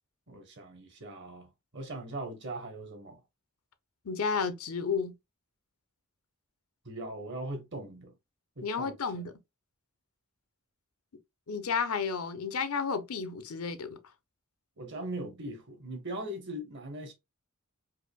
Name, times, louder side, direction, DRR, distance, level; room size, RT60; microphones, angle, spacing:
voice 1, 0.3-3.2 6.8-8.1 8.6-8.9 14.8-17.1, right 1 dB, 55° right, 1.2 m, -40 dB
voice 2, 4.0-5.1 8.6-9.3 11.5-14.0, left 5 dB, 80° left, 0.7 m, -32 dB
4.8 x 2.6 x 2.3 m
head